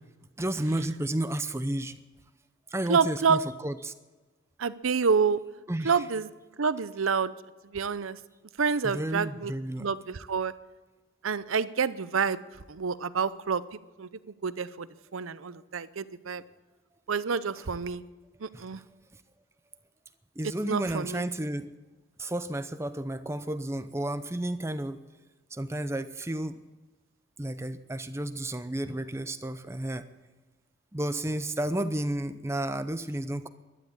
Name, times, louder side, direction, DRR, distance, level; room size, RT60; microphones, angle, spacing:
voice 1, 0.4-2.0 2.7-3.9 5.7-6.0 8.8-9.9 18.5-18.6 20.4-21.7 22.2-25.0 25.5-26.6 27.4-30.1 30.9-33.5, right 1 dB, 15° right, 11 dB, 0.6 m, -32 dB
voice 2, 2.9-3.4 4.6-5.4 5.8-6.3 6.6-7.3 7.7-8.2 8.6-9.5 9.8-10.5 11.2-12.4 12.7-14.1 14.4-16.4 17.1-18.0 18.4-18.8 20.7-21.2, right 5 dB, 85° right, 15 dB, 0.7 m, -28 dB
12.0 x 12.0 x 8.6 m, 1.2 s
head